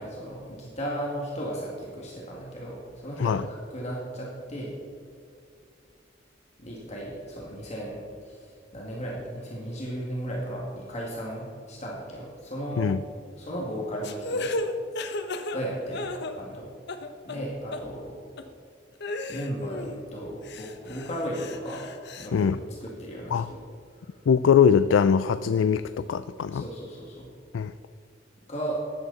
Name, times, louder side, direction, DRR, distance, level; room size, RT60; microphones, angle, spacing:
voice 1, 0.0-4.7 6.6-12.9 13.4-14.5 14.8-15.1 15.5-16.7 17.2-18.2 19.3-21.8 22.2-23.7 24.0-24.1 26.5-27.3 28.5-28.8, equal, 40° left, -4 dB, 2.2 m, -35 dB
sound 1, 14.0-16.6 16.9-17.4 17.7-17.8 18.4-18.5 19.0-20.0 20.4-22.3, left 2 dB, 65° left, 0.9 m, -34 dB
voice 2, 24.3-26.6 27.5-27.7, left 7 dB, 85° left, 13 dB, 0.4 m, -22 dB
14.0 x 11.0 x 4.2 m, 2.3 s
head